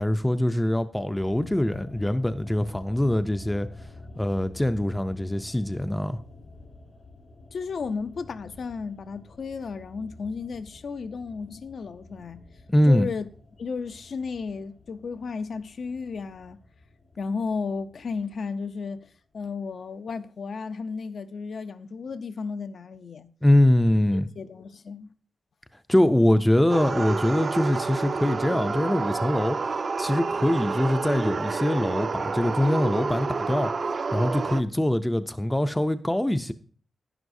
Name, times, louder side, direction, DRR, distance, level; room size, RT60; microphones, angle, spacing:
voice 1, 0.0-3.7 4.2-6.2 12.7-13.1 23.4-24.3 25.9-29.6 30.0-33.7 34.1-36.5, left 1 dB, 10° left, 0.4 m, -23 dB
sound 1, 1.2-19.4 19.6-19.7, left 2 dB, 80° left, 4.6 m, -49 dB
voice 2, 7.5-12.4 12.9-13.3 13.6-16.6 17.2-23.3 24.4-25.1, left 5 dB, 65° left, 0.5 m, -33 dB
sound 2, 26.7-34.6, right 4 dB, 45° right, 0.5 m, -29 dB
11.0 x 10.5 x 2.6 m
wide cardioid pair, 135°, 0 cm